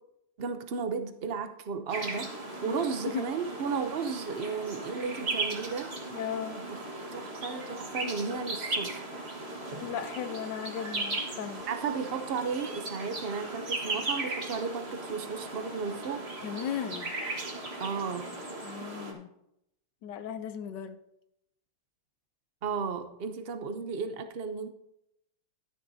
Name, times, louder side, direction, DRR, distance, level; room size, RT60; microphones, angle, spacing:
voice 1, 0.4-2.3 2.6-5.9 7.1-9.1 11.7-16.2 17.8-18.3 22.6-24.7, right 5 dB, 55° right, 8 dB, 0.6 m, -34 dB
sound 1, 1.9-19.1, right 2 dB, 35° right, 1.8 m, -37 dB
voice 2, 6.1-6.6 9.8-11.6 16.4-17.1 18.6-19.3 20.0-21.0, left 8 dB, 75° left, 11 dB, 1.3 m, -36 dB
13.0 x 9.9 x 2.8 m, 0.81 s
omnidirectional pair, 2.0 m